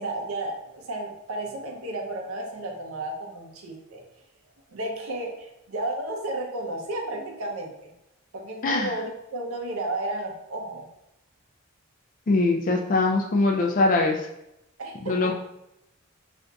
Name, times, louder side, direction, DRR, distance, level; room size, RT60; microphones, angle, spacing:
voice 1, 0.0-4.0 4.7-7.9 8.3-10.9 14.8-15.3, right 2 dB, 80° right, 1 dB, 0.6 m, -33 dB
voice 2, 12.3-14.3 15.0-15.3, left 3 dB, 40° left, 2 dB, 0.3 m, -22 dB
2.5 x 2.2 x 3.9 m, 0.85 s
head